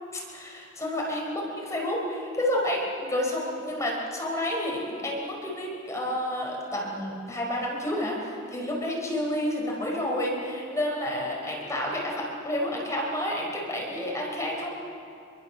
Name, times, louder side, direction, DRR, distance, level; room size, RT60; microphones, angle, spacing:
voice 1, 0.1-14.7, left 1 dB, 15° left, -3 dB, 5.1 m, -30 dB
26.5 x 24.0 x 7.2 m, 2.4 s
head